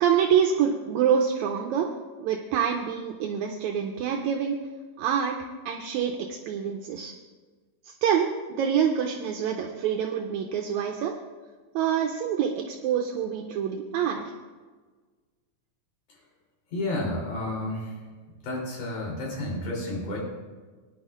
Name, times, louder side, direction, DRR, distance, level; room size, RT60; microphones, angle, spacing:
voice 1, 0.0-1.9 2.2-4.6 5.0-5.4 5.7-7.1 7.8-8.3 8.6-11.1 11.8-14.3, right 8 dB, 75° right, 2 dB, 1.9 m, -26 dB
voice 2, 16.7-17.9 18.4-20.2, left 1 dB, 80° left, -3 dB, 4.7 m, -31 dB
19.5 x 10.5 x 2.4 m, 1.4 s
omnidirectional pair, 3.6 m